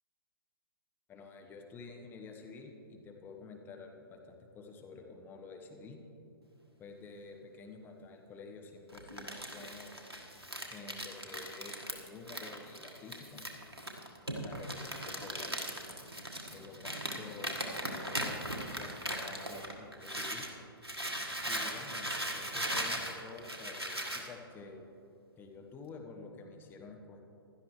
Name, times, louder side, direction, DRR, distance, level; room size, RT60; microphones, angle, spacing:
voice 1, 1.1-6.0 6.8-10.0 10.7-13.4 14.3-15.6 16.5-20.5 21.4-24.9 25.4-27.2, left 4 dB, 15° left, 2 dB, 1.1 m, -50 dB
Crumpling crinkling, 8.9-20.5 20.8-24.3, equal, 85° right, 1.6 m, -39 dB
16.5 x 12.0 x 3.2 m, 2.7 s
figure-of-eight pair, 120°, 13 cm